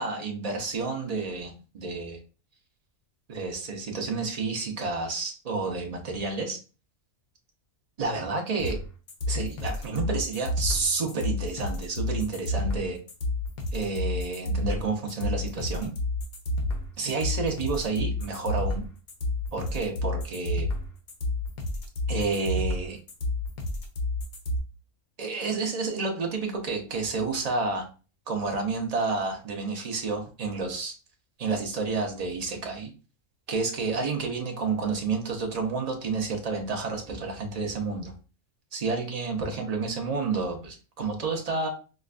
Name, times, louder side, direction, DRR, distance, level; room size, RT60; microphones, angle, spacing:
voice 1, 0.0-2.2 3.3-6.6 8.0-8.8 9.3-13.0 13.7-15.9 17.0-18.8 19.5-20.7 22.1-23.0 25.2-27.9 28.3-30.9 31.4-32.9 33.5-38.1 38.7-41.7, right 4 dB, 55° right, 2 dB, 0.4 m, -30 dB
sound 1, 8.6-24.6, left 2 dB, 85° left, 1.3 m, -30 dB
4.9 x 2.2 x 2.4 m, 0.35 s
omnidirectional pair, 1.5 m